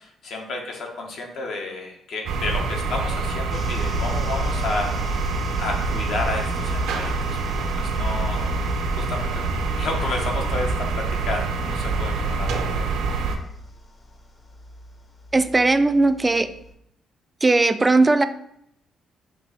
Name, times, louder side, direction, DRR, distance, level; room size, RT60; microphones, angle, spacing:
voice 1, 0.0-4.9 5.6-7.1 7.7-8.5 9.0-12.9, left 3 dB, 70° left, 1 dB, 1.0 m, -31 dB
sound 1, 2.3-13.4, right 3 dB, 80° right, 0.5 m, -26 dB
sound 2, 3.5-16.7, equal, 30° left, 0.7 m, -37 dB
voice 2, 15.3-16.5 17.4-18.2, right 3 dB, 20° right, 11 dB, 0.3 m, -18 dB
4.4 x 2.7 x 4.1 m, 0.74 s
cardioid pair, 90°, 0 cm